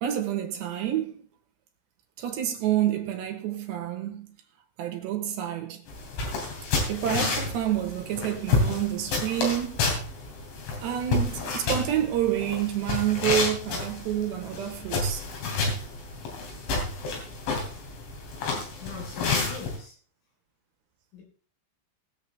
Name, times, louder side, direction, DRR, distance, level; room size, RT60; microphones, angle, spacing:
voice 1, 0.0-1.3 2.2-4.3 4.8-5.8 6.9-9.8 10.8-15.3, right 11 dB, 70° right, 2.9 m, -28 dB
sound 1, 5.9-19.8, left 3 dB, 70° left, 5.3 m, -30 dB
voice 2, 18.6-20.0 21.1-21.2, left 6 dB, 90° left, 6.6 m, -42 dB
20.5 x 7.5 x 3.3 m
omnidirectional pair, 5.8 m